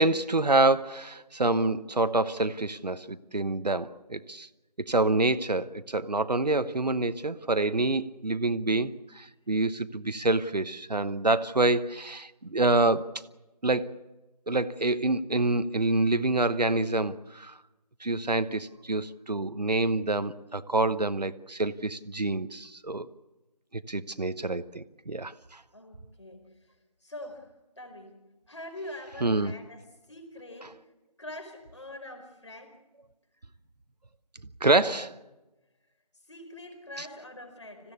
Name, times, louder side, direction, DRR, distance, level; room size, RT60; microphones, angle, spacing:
voice 1, 0.0-4.5 4.8-13.1 13.6-13.9 14.5-17.5 18.0-23.1 23.9-25.6 29.2-29.5 34.6-35.2 37.0-37.1, right 2 dB, 75° right, 12 dB, 1.1 m, -27 dB
voice 2, 25.7-26.7 27.0-27.5 27.8-28.2 28.5-29.8 30.1-30.7 31.2-32.7 36.3-37.9, left 1 dB, 45° left, 5 dB, 5.0 m, -44 dB
25.5 x 16.0 x 8.3 m, 1.1 s
figure-of-eight pair, 175°, 21 cm